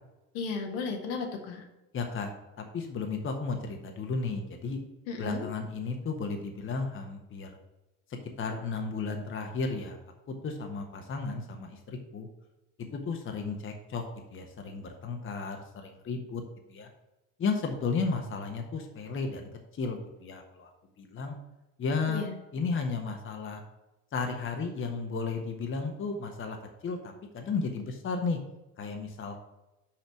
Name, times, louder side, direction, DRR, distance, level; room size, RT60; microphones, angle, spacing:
voice 1, 0.3-1.6 5.1-5.5 22.1-22.3, left 4 dB, 55° left, 3 dB, 1.4 m, -34 dB
voice 2, 1.9-2.3 2.6-4.8 5.2-7.5 8.4-10.0 10.4-12.3 12.9-14.0 14.3-16.4 16.7-16.9 17.4-19.5 19.8-20.7 21.0-21.3 21.8-22.3 22.5-23.6 24.1-26.6 26.8-28.4 28.8-29.4, left 4 dB, 25° left, 4 dB, 1.2 m, -33 dB
5.9 x 5.7 x 5.9 m, 1.0 s
figure-of-eight pair, 65°, 46 cm